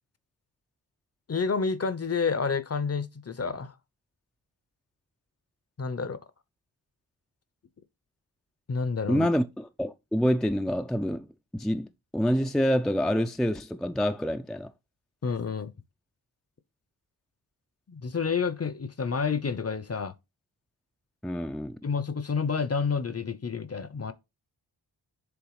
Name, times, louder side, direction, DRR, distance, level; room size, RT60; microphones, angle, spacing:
voice 1, 1.3-3.7 5.8-6.2 8.7-9.3 15.2-15.7 17.9-20.1 21.8-24.1, left 5 dB, 35° left, 0.8 m, -29 dB
voice 2, 9.1-11.3 11.5-14.7 21.2-21.8, equal, ahead, 0.5 m, -27 dB
7.1 x 3.4 x 4.8 m
cardioid pair, 55°, 43 cm